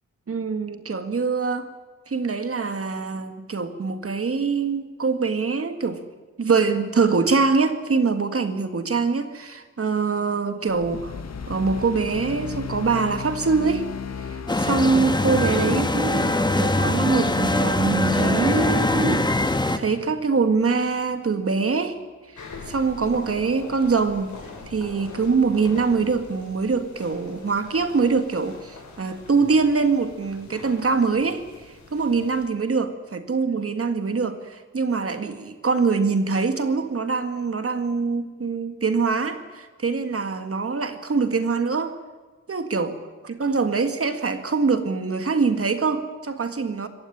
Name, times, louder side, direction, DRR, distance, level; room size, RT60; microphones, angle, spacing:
voice 1, 0.3-1.7 2.1-6.0 6.4-11.2 11.5-13.9 14.2-19.3 19.8-22.0 22.7-24.4 24.7-31.4 31.9-42.0 42.5-42.9 43.2-46.9, right 4 dB, 50° right, 8 dB, 1.8 m, -24 dB
sound 1, 10.7-21.2, left 6 dB, 60° left, 1.7 m, -37 dB
sound 2, 14.5-19.8, left 2 dB, 15° left, 1.4 m, -22 dB
sound 3, 22.4-32.4, left 4 dB, 80° left, 6.0 m, -42 dB
26.0 x 15.5 x 9.9 m, 1.3 s
wide cardioid pair, 120°, 29 cm